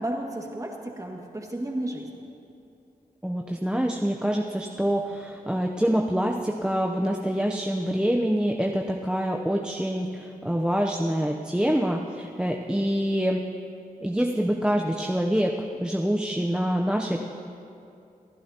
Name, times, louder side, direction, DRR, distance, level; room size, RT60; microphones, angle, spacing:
voice 1, 0.0-2.2, right 1 dB, 20° right, 0 dB, 2.0 m, -33 dB
voice 2, 3.2-13.4 14.0-15.6 15.8-17.2, equal, 5° right, 1 dB, 0.7 m, -26 dB
27.5 x 11.0 x 2.9 m, 2.6 s
wide cardioid pair, 75°, 15 cm